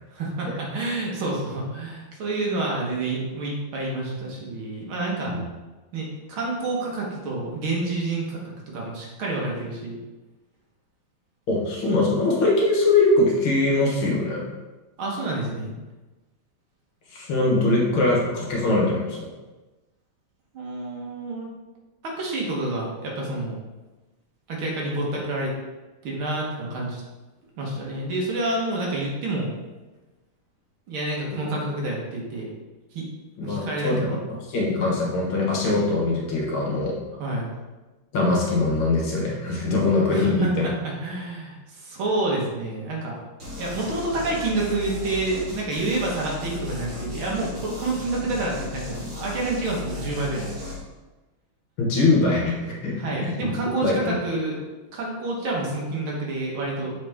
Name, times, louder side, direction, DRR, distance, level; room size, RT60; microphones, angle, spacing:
voice 1, 0.1-5.4 5.9-8.4 8.7-10.0 15.0-15.7 20.5-21.5 22.0-23.6 24.5-25.5 26.0-27.0 27.6-29.5 30.9-32.5 32.9-33.0 33.4-34.2 37.2-37.5 40.1-43.2 43.6-50.4 53.0-56.9, right 2 dB, 70° right, -3 dB, 2.1 m, -28 dB
voice 2, 11.5-14.5 17.1-19.3 31.4-31.6 33.4-34.2 34.5-37.0 38.1-40.7 51.8-53.6 53.8-54.1, left 2 dB, 70° left, -2 dB, 2.0 m, -22 dB
sound 1, 43.4-50.8, left 3 dB, 45° right, 2.8 m, -35 dB
7.1 x 4.1 x 3.5 m, 1.2 s
omnidirectional pair, 2.4 m